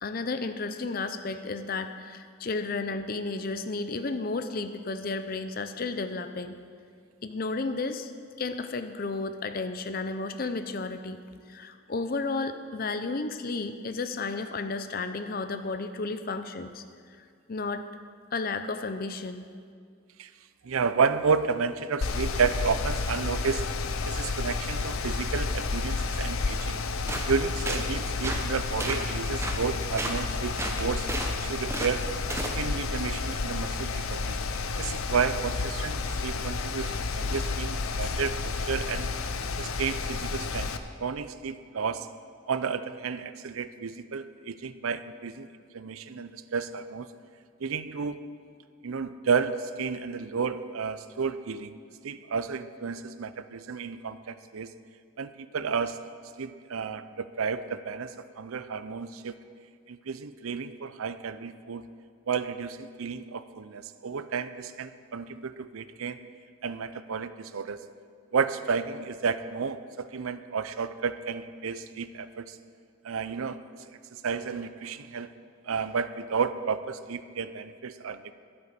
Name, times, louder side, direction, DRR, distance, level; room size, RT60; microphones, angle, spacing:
voice 1, 0.0-6.6 7.2-8.1 8.4-11.2 11.5-16.8 17.5-17.8 18.3-19.5, left 3 dB, 45° left, 9 dB, 0.5 m, -32 dB
voice 2, 20.6-23.7 24.0-26.9 27.3-31.1 31.3-32.1 32.5-34.4 34.8-39.1 39.6-42.1 42.5-45.5 45.7-47.1 47.6-48.2 48.8-51.8 52.0-54.7 55.2-56.0 56.4-59.4 59.9-61.9 62.3-66.2 66.6-67.9 68.3-72.6 73.0-73.6 74.1-75.3 75.6-78.3, right 5 dB, 80° right, 13 dB, 0.6 m, -31 dB
Mechanical fan, 22.0-40.8, left 4 dB, 85° left, 0.7 m, -31 dB
sound 1, 27.1-27.3 27.7-27.8 28.2-28.4 28.8-29.0 29.4-29.6 30.0-30.2 30.6-31.3 31.7-31.9 32.3-32.6, right 2 dB, 10° right, 0.8 m, -32 dB
11.5 x 8.8 x 6.8 m, 2.1 s
head